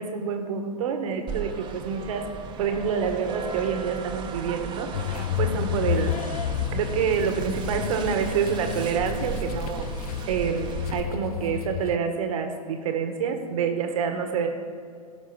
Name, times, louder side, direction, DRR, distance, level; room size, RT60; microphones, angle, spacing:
voice 1, 0.0-2.3 2.6-6.2 6.7-9.9 10.3-14.5, right 6 dB, 60° right, 6 dB, 1.6 m, -27 dB
sound 1, 1.3-11.0, right 5 dB, 25° right, 1.2 m, -36 dB
sound 2, 4.9-12.0, left 12 dB, 70° left, 0.4 m, -31 dB
16.5 x 6.0 x 6.0 m, 2.3 s
hypercardioid pair, 110°, 20 cm